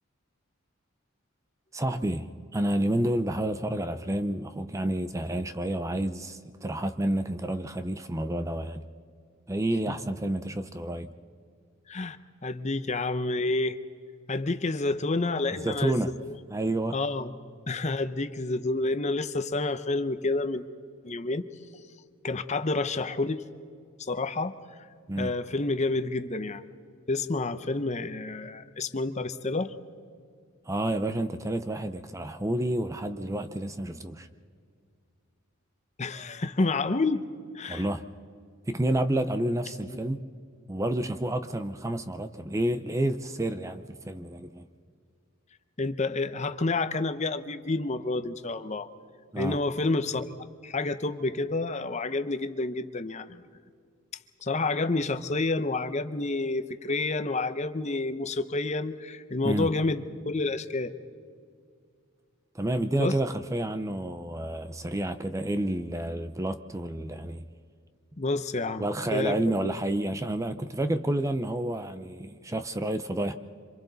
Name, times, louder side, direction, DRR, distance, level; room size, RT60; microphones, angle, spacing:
voice 1, 1.7-8.8 9.5-11.1 15.6-16.1 16.5-17.0 25.1-25.3 30.7-34.3 37.7-38.1 38.7-40.2 40.7-44.6 49.3-49.6 59.4-59.7 62.5-67.4 68.8-73.3, right 1 dB, 15° right, 0.5 m, -29 dB
voice 2, 12.4-13.8 14.3-16.0 16.2-16.3 16.9-17.3 17.7-20.6 21.0-21.4 22.2-23.4 24.0-24.5 25.2-26.6 27.1-29.7 36.0-37.2 37.5-37.9 39.9-40.0 45.8-48.9 49.4-50.2 50.6-53.4 54.4-60.9 63.0-63.1 68.2-69.4, left 3 dB, 30° left, 0.7 m, -29 dB
26.5 x 26.5 x 4.0 m
head